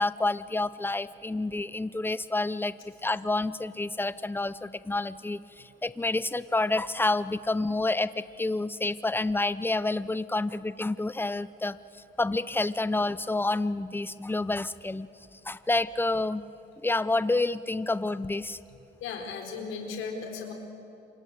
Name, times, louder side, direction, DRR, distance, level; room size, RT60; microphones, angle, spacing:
voice 1, 0.0-2.7 3.0-11.8 12.2-15.1 15.5-16.5 16.8-18.6, left 2 dB, 10° left, 16 dB, 0.8 m, -28 dB
voice 2, 19.0-20.5, left 5 dB, 90° left, 3 dB, 4.2 m, -36 dB
27.5 x 25.5 x 8.4 m, 2.7 s
cardioid pair, 90°, 20 cm